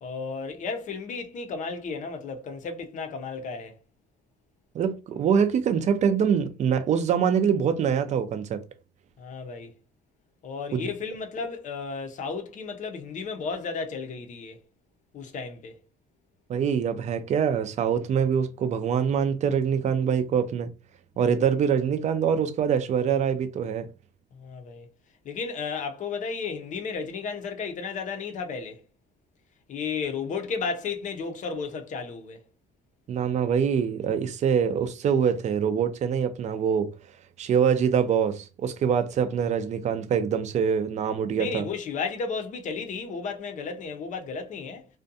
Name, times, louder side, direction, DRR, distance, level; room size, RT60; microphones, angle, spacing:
voice 1, 0.0-3.8 9.2-9.7 10.4-14.6 15.1-15.8 24.3-24.9 25.2-28.8 29.7-32.4 41.3-44.9, left 5 dB, 50° left, 0.5 m, -33 dB
voice 2, 4.7-8.6 10.7-10.9 16.5-20.7 21.2-23.9 33.1-36.9 37.4-41.7, right 7 dB, 45° right, 0.4 m, -24 dB
2.5 x 2.2 x 2.6 m
cardioid pair, 110°, 17 cm